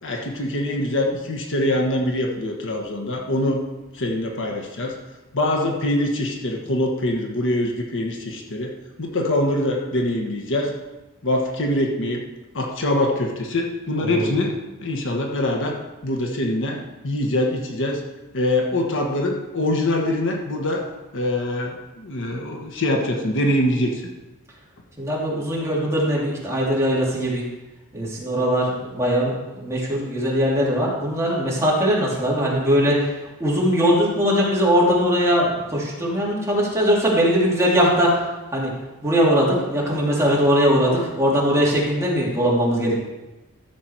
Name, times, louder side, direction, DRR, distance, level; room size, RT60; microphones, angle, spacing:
voice 1, 0.0-3.6 3.9-5.0 5.3-8.7 9.0-10.8 11.2-12.2 12.5-15.8 16.0-18.0 18.3-20.9 21.1-24.0, left 1 dB, 60° left, 1 dB, 1.4 m, -24 dB
voice 2, 14.0-14.3 25.0-27.4 27.9-33.1 33.4-38.2 38.5-38.7 39.0-43.0, equal, 15° right, -5 dB, 2.9 m, -20 dB
13.0 x 7.1 x 4.6 m, 1.1 s
head